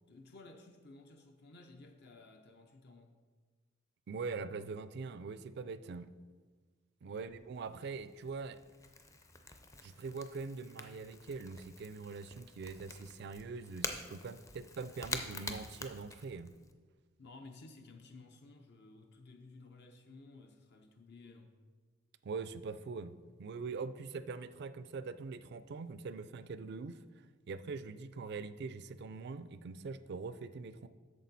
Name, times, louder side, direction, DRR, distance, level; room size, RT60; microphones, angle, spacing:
voice 1, 0.1-3.2 7.1-7.3 17.2-21.5, left 3 dB, 55° left, 5 dB, 0.6 m, -55 dB
voice 2, 4.1-6.1 7.0-8.6 9.8-16.5 22.2-27.0 27.5-30.9, right 4 dB, 55° right, 13 dB, 0.4 m, -43 dB
Crackle / Crack, 7.2-16.7, left 3 dB, 15° left, 0.5 m, -47 dB
8.4 x 6.5 x 4.1 m, 1.5 s
head